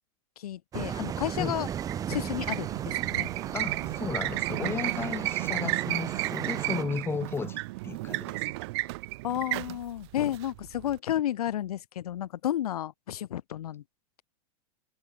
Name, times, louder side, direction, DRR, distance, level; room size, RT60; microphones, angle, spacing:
voice 1, 0.4-1.7 2.1-3.3 8.8-8.9 9.2-13.8, left 11 dB, 85° left, 3.1 m, -32 dB
sound 1, 0.7-6.8, right 9 dB, 20° right, 2.0 m, -36 dB
sound 2, 1.6-11.0, right 23 dB, 45° right, 0.8 m, -33 dB
voice 2, 3.5-8.5, left 6 dB, 10° left, 4.2 m, -35 dB
supercardioid pair, 160°, 19 cm